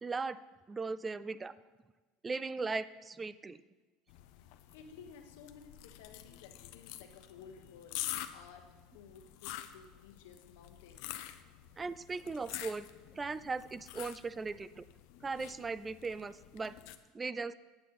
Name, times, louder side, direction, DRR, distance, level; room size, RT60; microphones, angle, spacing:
voice 1, 0.0-0.4 0.7-1.5 2.2-3.6 11.8-12.9 13.1-14.9 15.2-16.8 17.1-17.5, right 4 dB, 15° right, 16 dB, 0.3 m, -38 dB
sound 1, 4.1-17.0, left 14 dB, 65° left, 0.6 m, -47 dB
voice 2, 4.7-11.1, left 6 dB, 85° left, 5 dB, 1.3 m, -55 dB
8.8 x 8.3 x 5.4 m, 1.3 s
supercardioid pair, 150°, 0 cm